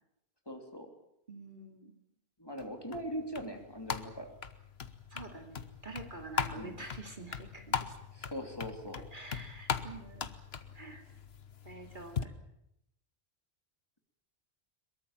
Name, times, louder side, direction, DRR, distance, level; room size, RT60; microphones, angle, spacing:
voice 1, 0.5-0.9 2.4-4.3 6.5-6.8 8.1-9.0, equal, 20° left, 3 dB, 3.1 m, -41 dB
voice 2, 1.3-1.9 5.1-8.0 9.1-10.3 10.7-11.0 11.6-12.3, right 3 dB, 50° right, 4 dB, 2.9 m, -47 dB
sound 1, 2.6-12.2, left 6 dB, 70° left, 1.4 m, -40 dB
22.5 x 22.5 x 7.4 m, 0.80 s
omnidirectional pair, 1.1 m